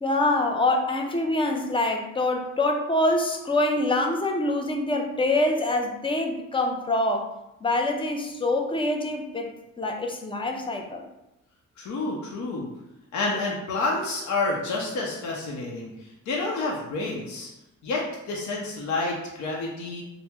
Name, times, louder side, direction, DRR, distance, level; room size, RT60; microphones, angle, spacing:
voice 1, 0.0-7.3 7.6-11.0, left 2 dB, 20° left, 3 dB, 0.4 m, -25 dB
voice 2, 11.8-12.7 13.1-17.5 17.8-20.0, left 3 dB, 75° left, -2 dB, 0.7 m, -29 dB
2.8 x 2.0 x 3.3 m, 0.92 s
cardioid pair, 90°, 30 cm